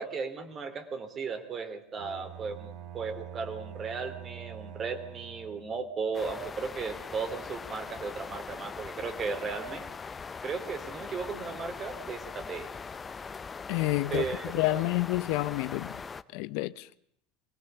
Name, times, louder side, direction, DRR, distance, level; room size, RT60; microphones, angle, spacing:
voice 1, 0.0-9.9 10.4-12.7 14.1-14.8, right 5 dB, 30° right, 3.2 m, -36 dB
Bowed string instrument, 2.0-5.9, right 10 dB, 55° right, 3.8 m, -45 dB
sound 1, 6.1-16.2, left 5 dB, 20° left, 0.8 m, -41 dB
voice 2, 13.7-16.0 16.3-16.9, left 19 dB, 70° left, 0.8 m, -29 dB
22.5 x 18.0 x 6.9 m
supercardioid pair, 125°, 0 cm